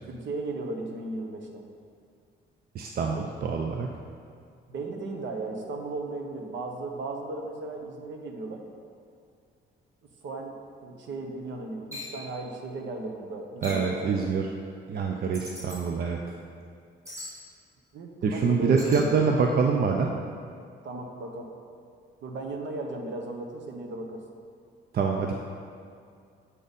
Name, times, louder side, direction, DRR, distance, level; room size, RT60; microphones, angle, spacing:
voice 1, 0.1-1.6 4.7-8.6 10.2-10.5 10.8-14.2 17.9-19.3 20.8-21.5 22.2-24.2, right 2 dB, 70° right, 2 dB, 1.0 m, -36 dB
voice 2, 2.7-3.9 13.6-14.5 14.9-16.2 18.2-20.1 24.9-25.3, right 5 dB, 50° right, 2 dB, 0.5 m, -25 dB
sound 1, 11.9-12.2 13.6-13.9 15.3-15.8 17.0-17.4 18.8-19.1, left 1 dB, 15° right, 1.8 m, -39 dB
7.6 x 4.0 x 5.3 m, 2.3 s
cardioid pair, 90°, 20 cm